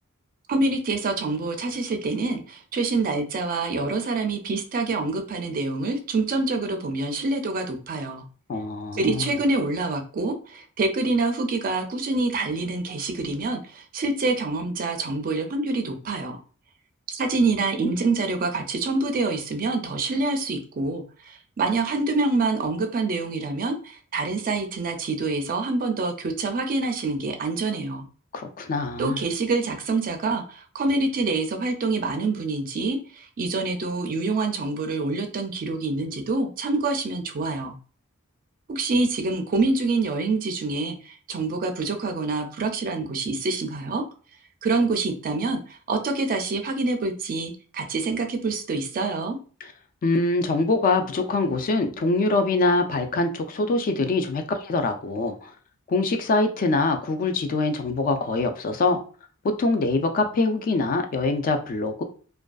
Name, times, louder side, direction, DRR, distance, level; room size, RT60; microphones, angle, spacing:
voice 1, 0.5-8.2 8.9-16.4 17.1-28.1 29.0-37.7 38.7-44.0 44.6-49.4, right 3 dB, 40° right, 5 dB, 0.4 m, -26 dB
voice 2, 8.5-9.2 28.3-29.2 50.0-55.5 55.9-59.0 59.4-62.0, left 3 dB, 40° left, 6 dB, 0.3 m, -24 dB
2.4 x 2.2 x 2.3 m, 0.40 s
head